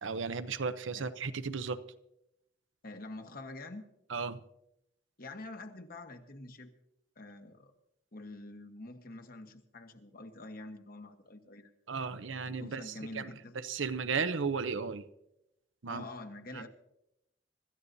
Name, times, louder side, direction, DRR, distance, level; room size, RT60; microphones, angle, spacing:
voice 1, 0.0-1.8 4.1-4.4 11.9-13.3 13.6-15.0 15.8-16.0 16.5-16.6, right 5 dB, 85° right, 0.7 m, -35 dB
voice 2, 2.8-3.9 5.2-6.7 7.2-7.7 8.1-11.7 12.1-13.6 15.9-16.7, left 2 dB, 50° left, 1.3 m, -46 dB
25.5 x 14.0 x 2.7 m
head